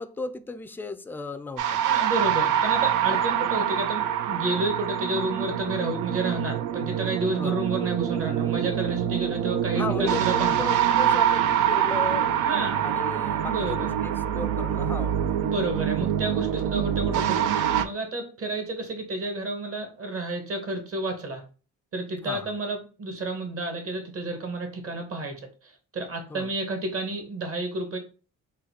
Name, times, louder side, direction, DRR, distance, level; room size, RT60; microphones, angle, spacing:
voice 1, 0.0-1.8 3.1-3.2 7.4-7.6 9.8-12.3 12.8-15.2 22.2-22.5 26.3-26.5, left 3 dB, 5° left, 0.3 m, -35 dB
sound 1, 1.6-17.8, right 9 dB, 85° right, 0.5 m, -25 dB
voice 2, 1.8-10.6 12.4-12.8 13.5-13.9 15.4-17.5 17.8-21.4 21.9-25.5 25.9-28.0, right 2 dB, 50° right, 1.3 m, -30 dB
3.9 x 2.3 x 4.2 m
cardioid pair, 90°, 30 cm